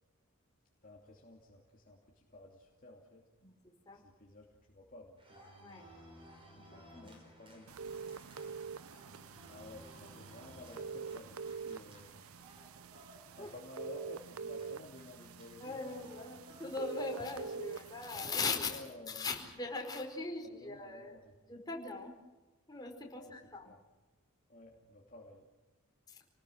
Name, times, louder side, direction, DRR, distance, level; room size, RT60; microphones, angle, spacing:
voice 1, 0.8-3.2 3.9-5.5 7.0-8.0 9.5-12.3 13.3-16.4 18.7-19.3 20.4-21.3 23.1-23.3 23.6-23.8 24.5-25.4, left 2 dB, 40° left, -2 dB, 2.9 m, -53 dB
voice 2, 3.4-4.0 5.6-5.9 6.5-7.1 13.4-13.5 15.6-18.8 19.1-22.1 22.7-23.7 26.1-26.2, left 3 dB, 20° left, 0 dB, 4.7 m, -40 dB
sound 1, 5.2-17.9, equal, 25° right, 5.7 m, -59 dB
sound 2, 7.7-18.3, right 5 dB, 75° right, 0.7 m, -46 dB
30.0 x 19.5 x 6.5 m, 1.2 s
head